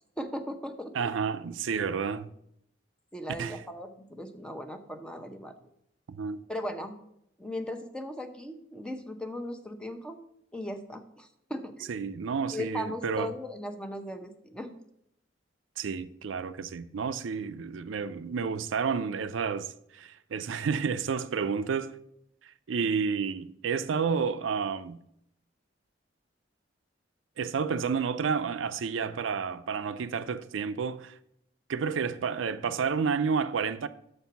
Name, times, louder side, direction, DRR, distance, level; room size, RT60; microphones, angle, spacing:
voice 1, 0.2-0.9 3.1-5.7 6.5-7.0 7.4-10.2 10.5-11.9 12.5-14.8, equal, 5° left, 0.7 m, -38 dB
voice 2, 0.9-2.3 3.4-3.6 6.1-6.4 11.9-13.3 15.8-21.9 22.4-25.0 27.4-31.2 31.7-33.9, right 6 dB, 85° right, 0.5 m, -30 dB
6.7 x 4.5 x 6.8 m
head